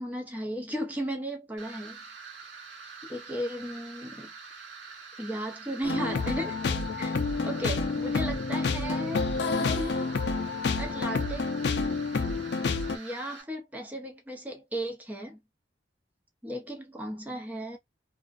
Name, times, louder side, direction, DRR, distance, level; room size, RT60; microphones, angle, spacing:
voice 1, 0.0-2.0 3.1-4.3 5.2-6.6 7.0-7.1 7.4-10.1 10.7-11.5 12.9-15.4 16.4-17.8, right 1 dB, 10° right, 0.6 m, -35 dB
sound 1, 1.6-13.4, right 5 dB, 90° right, 1.0 m, -46 dB
sound 2, 5.8-13.0, left 4 dB, 65° left, 0.4 m, -29 dB
2.5 x 2.1 x 2.4 m
head